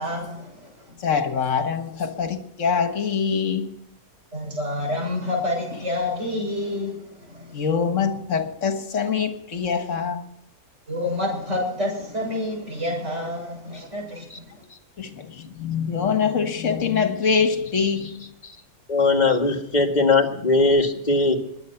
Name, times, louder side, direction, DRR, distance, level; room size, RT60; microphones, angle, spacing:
voice 1, 0.0-0.9 4.3-7.5 10.9-14.6, left 1 dB, 50° right, 7.8 m, -28 dB
voice 2, 1.0-3.8 7.5-10.2 15.0-18.3, left 6 dB, 55° left, 1.8 m, -24 dB
voice 3, 18.9-21.4, left 3 dB, 30° left, 2.0 m, -19 dB
22.0 x 9.3 x 5.9 m
omnidirectional pair, 1.6 m